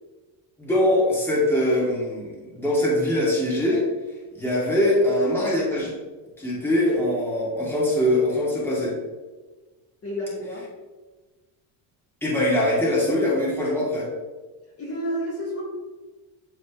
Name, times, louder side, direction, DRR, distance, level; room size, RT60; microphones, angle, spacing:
voice 1, 0.6-3.8 4.3-5.9 6.4-8.9 12.2-14.1, left 1 dB, 5° left, -7 dB, 2.3 m, -22 dB
voice 2, 10.0-10.6 14.8-15.6, equal, 30° left, -5 dB, 2.0 m, -30 dB
11.5 x 4.1 x 3.1 m, 1.3 s
cardioid pair, 155°, 46 cm